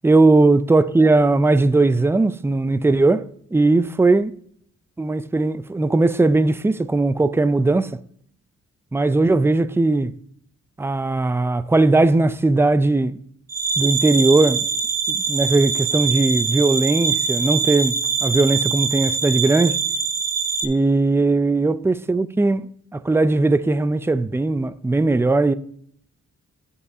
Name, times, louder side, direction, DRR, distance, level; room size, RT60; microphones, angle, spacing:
voice 1, 0.0-4.3 5.0-8.0 8.9-10.1 10.8-13.2 13.8-14.7 15.1-18.0 18.2-19.8 20.6-25.5, right 2 dB, 10° right, 0.3 m, -18 dB
sound 1, 13.5-20.6, right 5 dB, 55° right, 0.9 m, -23 dB
15.5 x 5.5 x 2.7 m
wide cardioid pair, 100°, 30 cm